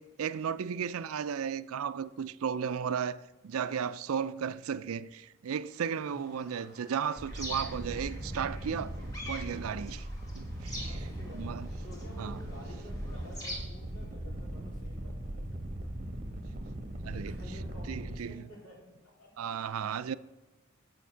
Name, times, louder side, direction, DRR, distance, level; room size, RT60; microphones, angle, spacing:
voice 1, 0.0-8.9 9.3-10.1 10.3-10.8 11.3-11.7 12.2-12.4 16.8-17.4 17.9-18.4 19.4-20.1, right 7 dB, 90° right, 0.4 m, -35 dB
sound 1, 5.7-13.6, equal, 15° left, 1.8 m, -46 dB
voice 2, 6.1-6.5 10.8-11.6 11.8-16.0 17.0-19.7, left 1 dB, 75° left, 3.4 m, -52 dB
sound 2, 7.2-18.2, right 1 dB, 35° right, 1.0 m, -39 dB
7.9 x 7.0 x 6.2 m
head